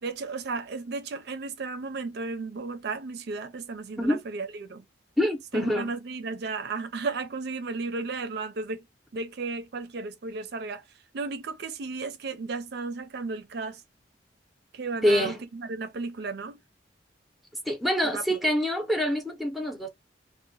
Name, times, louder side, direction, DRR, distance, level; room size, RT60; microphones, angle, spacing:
voice 1, 0.0-4.8 5.5-8.8 9.1-13.8 14.7-16.6 18.0-18.2, right 4 dB, 60° right, 0.4 m, -34 dB
voice 2, 5.2-5.9 15.0-15.4 17.7-19.9, equal, ahead, 0.6 m, -25 dB
2.7 x 2.1 x 3.9 m
head